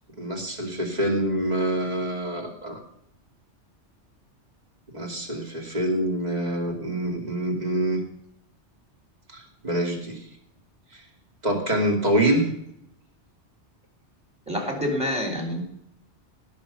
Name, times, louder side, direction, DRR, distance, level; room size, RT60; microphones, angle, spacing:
voice 1, 0.2-2.8 4.9-8.0 9.3-10.3 10.9-11.0 11.4-12.4, right 1 dB, 35° right, 1 dB, 2.9 m, -26 dB
voice 2, 14.5-15.6, left 1 dB, 5° right, 3 dB, 3.7 m, -27 dB
17.5 x 6.2 x 6.8 m, 0.74 s
omnidirectional pair, 1.2 m